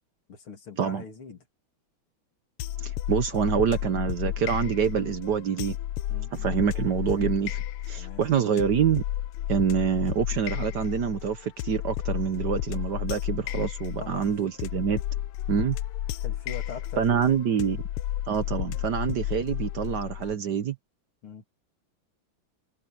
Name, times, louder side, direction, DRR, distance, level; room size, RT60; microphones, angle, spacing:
voice 1, 0.3-1.4 3.3-3.5 6.1-6.3 8.0-8.2 14.0-14.4 16.2-17.4 21.2-21.4, left 5 dB, 70° left, 3.7 m, -42 dB
sound 1, 2.6-20.3, left 13 dB, 90° left, 1.6 m, -32 dB
voice 2, 2.8-5.8 6.3-9.0 9.5-15.0 15.5-15.8 17.0-17.8 18.3-20.8, right 7 dB, 60° right, 1.4 m, -26 dB
omnidirectional pair, 2.4 m